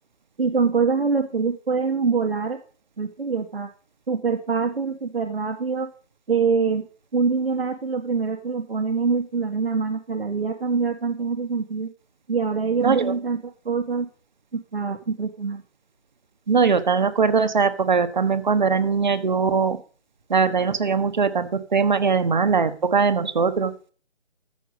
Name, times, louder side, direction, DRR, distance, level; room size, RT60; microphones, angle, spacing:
voice 1, 0.4-2.6 3.0-3.7 4.1-5.9 6.3-6.8 7.1-11.9 12.3-13.4 13.6-14.1 14.5-15.6, right 5 dB, 55° right, 3 dB, 1.7 m, -24 dB
voice 2, 12.8-13.1 16.5-19.8 20.3-23.7, right 5 dB, 40° right, 12 dB, 1.3 m, -21 dB
14.0 x 8.1 x 5.2 m, 0.40 s
figure-of-eight pair, 155°, 35 cm